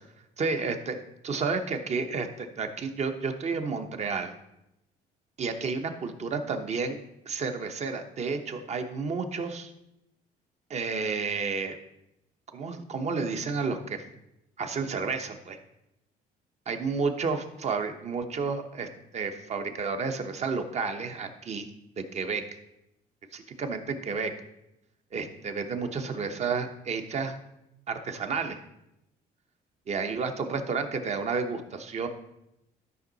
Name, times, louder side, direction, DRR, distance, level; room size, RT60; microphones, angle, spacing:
voice 1, 0.4-4.3 5.4-7.0 7.3-9.7 10.7-11.8 12.5-14.0 14.6-15.6 16.7-18.9 19.1-21.7 22.0-22.4 23.3-24.3 25.1-27.4 27.9-28.6 29.9-32.1, right 4 dB, 40° right, 7 dB, 1.0 m, -31 dB
12.5 x 5.5 x 4.0 m, 0.86 s
cardioid pair, 110°, 17 cm